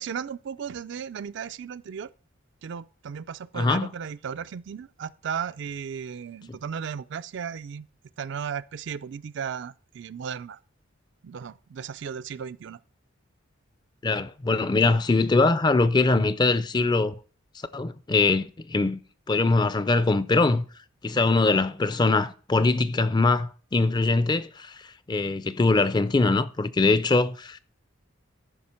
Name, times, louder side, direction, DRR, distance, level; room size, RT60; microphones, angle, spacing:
voice 1, 0.0-2.1 2.6-7.9 8.2-10.6 11.2-12.8, right 7 dB, 60° right, 0.3 m, -35 dB
voice 2, 3.5-3.9 6.5-6.6 14.0-17.1 17.7-19.0 19.3-20.6 21.0-27.6, left 3 dB, 20° left, 0.4 m, -22 dB
14.0 x 5.6 x 4.3 m
head